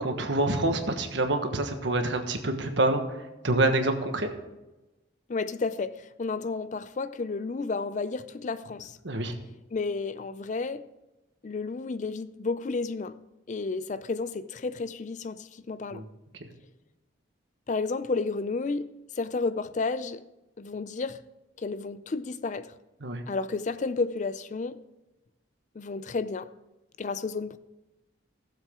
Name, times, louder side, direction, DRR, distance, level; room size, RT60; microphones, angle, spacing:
voice 1, 0.0-3.0 3.4-4.3 9.0-9.3 15.9-16.0 23.0-23.2, right 2 dB, 70° right, 1.4 m, -26 dB
voice 2, 5.3-9.0 9.7-10.9 11.4-13.2 13.5-16.0 17.7-18.9 19.1-20.2 20.6-21.2 21.6-22.7 23.3-24.8 25.8-26.5 27.0-27.6, left 4 dB, 40° left, 0.4 m, -31 dB
16.0 x 7.5 x 3.7 m
head